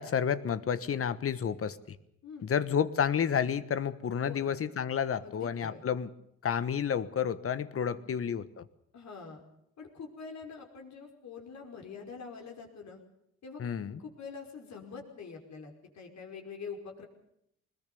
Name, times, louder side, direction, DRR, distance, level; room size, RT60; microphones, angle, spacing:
voice 1, 0.0-2.0 2.4-6.1 6.4-8.6 13.6-14.0, left 8 dB, 50° left, 14 dB, 1.3 m, -30 dB
voice 2, 4.2-4.6 5.2-5.8 7.7-8.2 8.9-9.4 9.8-13.0 13.4-13.6 14.0-17.1, left 5 dB, 65° left, 2 dB, 5.4 m, -45 dB
21.0 x 20.5 x 7.0 m, 0.77 s
cardioid pair, 90°, 30 cm